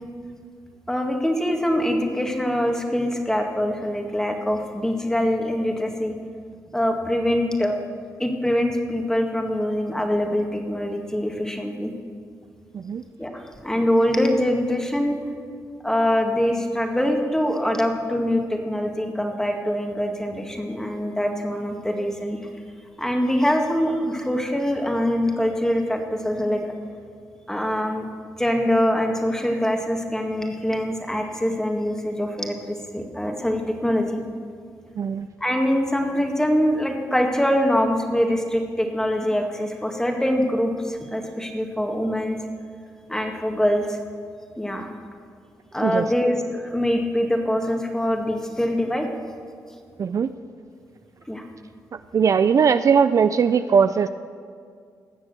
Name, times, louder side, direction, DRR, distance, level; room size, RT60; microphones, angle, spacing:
voice 1, 0.9-6.1 6.7-7.8 8.2-11.9 13.2-15.2 15.8-22.4 23.0-26.6 27.5-28.1 28.4-34.2 35.4-42.4 43.1-44.0 44.6-44.9 45.7-49.1 51.3-51.4, equal, 5° left, 3 dB, 1.9 m, -24 dB
voice 2, 35.0-35.3 45.8-46.1 50.0-50.3 52.1-54.1, right 6 dB, 50° right, 11 dB, 0.4 m, -19 dB
19.0 x 7.2 x 6.8 m, 2.2 s
cardioid pair, 75°, 7 cm